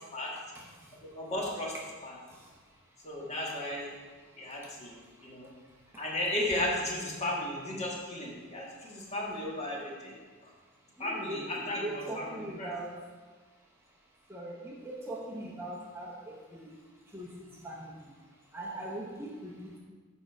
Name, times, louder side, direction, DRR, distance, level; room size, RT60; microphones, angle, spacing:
voice 1, 1.0-1.7 2.0-2.1 3.0-3.9 4.4-5.5 6.0-10.1 11.0-12.2 12.6-12.7, left 1 dB, 35° left, -3 dB, 1.6 m, -35 dB
voice 2, 11.0-13.0 14.3-16.7 17.1-17.4 17.6-17.9 18.5-19.8, right 1 dB, 10° right, -3 dB, 0.8 m, -40 dB
7.7 x 5.2 x 4.6 m, 1.4 s
head